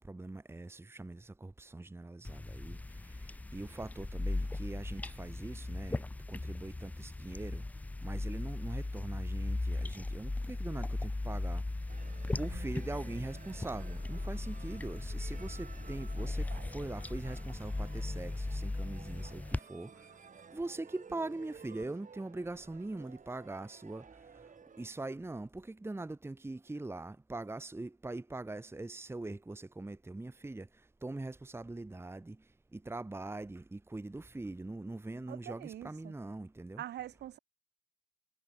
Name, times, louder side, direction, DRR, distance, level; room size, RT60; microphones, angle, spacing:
voice 1, 0.0-7.6 8.0-11.6 12.3-20.1 20.5-24.1 24.8-30.7 31.0-32.4 32.7-36.8, right 2 dB, 10° right, 1.3 m, -42 dB
sound 1, 2.2-19.6, left 2 dB, 10° left, 0.3 m, -38 dB
sound 2, 11.9-24.9, right 6 dB, 40° right, 3.9 m, -55 dB
voice 2, 35.3-36.1 36.8-37.4, right 12 dB, 60° right, 0.6 m, -44 dB
cardioid pair, 90°, 20 cm